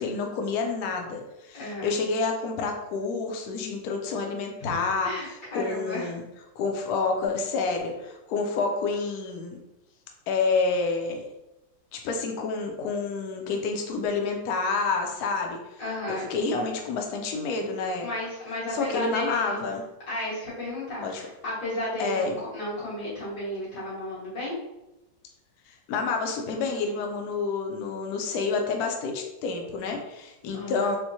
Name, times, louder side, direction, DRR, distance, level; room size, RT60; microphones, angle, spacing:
voice 1, 0.0-6.2 6.6-9.6 10.3-11.2 11.9-15.8 16.1-18.1 18.7-19.9 21.0-21.2 22.0-22.3 25.7-31.0, left 4 dB, 85° left, 3 dB, 0.8 m, -29 dB
voice 2, 1.5-1.9 4.6-4.8 5.0-6.2 15.8-16.2 18.0-19.6 20.1-24.6 30.5-30.9, left 1 dB, 60° left, -9 dB, 2.2 m, -33 dB
4.3 x 2.1 x 2.7 m, 0.96 s
omnidirectional pair, 2.2 m